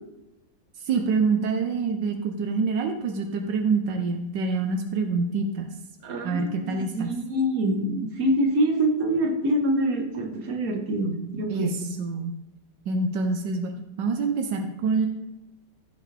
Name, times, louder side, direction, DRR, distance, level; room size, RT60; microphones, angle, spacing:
voice 1, 0.8-5.7 6.2-7.1 11.5-11.7 12.0-12.4 12.9-15.1, right 4 dB, 85° right, 4 dB, 1.5 m, -26 dB
voice 2, 6.0-11.8, right 1 dB, 55° right, 2 dB, 1.8 m, -25 dB
15.0 x 6.3 x 3.4 m, 0.94 s
omnidirectional pair, 1.9 m